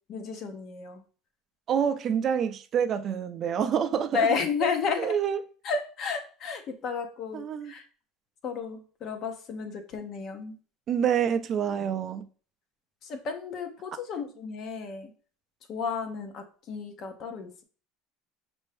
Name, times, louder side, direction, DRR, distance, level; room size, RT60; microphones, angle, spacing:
voice 1, 0.1-1.0 4.1-5.1 5.6-7.8 8.4-10.6 13.1-15.1 15.7-17.6, left 5 dB, 45° left, 0.7 m, -32 dB
voice 2, 1.7-4.4 5.0-5.4 7.3-7.7 10.9-12.3, right 8 dB, 35° right, 0.4 m, -27 dB
5.4 x 2.6 x 3.3 m
cardioid pair, 140°, 0 cm